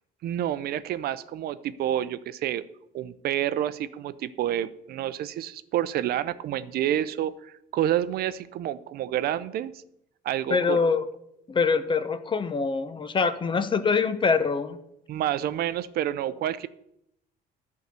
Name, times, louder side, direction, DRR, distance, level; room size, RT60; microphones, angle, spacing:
voice 1, 0.2-2.6 2.9-9.7 10.2-10.8 15.1-16.7, right 11 dB, 65° right, 15 dB, 0.5 m, -29 dB
voice 2, 10.5-11.0 11.5-14.8, left 5 dB, 30° left, 12 dB, 0.8 m, -24 dB
10.5 x 4.7 x 6.7 m, 0.78 s
cardioid pair, 110°, 17 cm